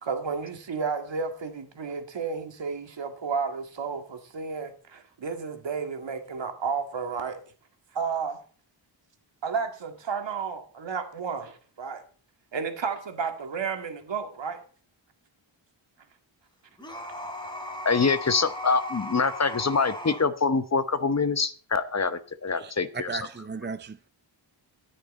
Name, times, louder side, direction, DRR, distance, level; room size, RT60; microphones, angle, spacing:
voice 1, 0.0-7.4 7.9-8.4 9.4-12.0 12.5-14.6, right 5 dB, 70° right, 2.1 m, -32 dB
sound 1, 16.8-20.3, left 1 dB, 10° left, 3.2 m, -37 dB
voice 2, 17.8-23.1, left 4 dB, 35° left, 0.9 m, -25 dB
voice 3, 22.5-24.1, right 4 dB, 25° right, 0.5 m, -36 dB
19.0 x 6.5 x 4.2 m
wide cardioid pair, 90°, 46 cm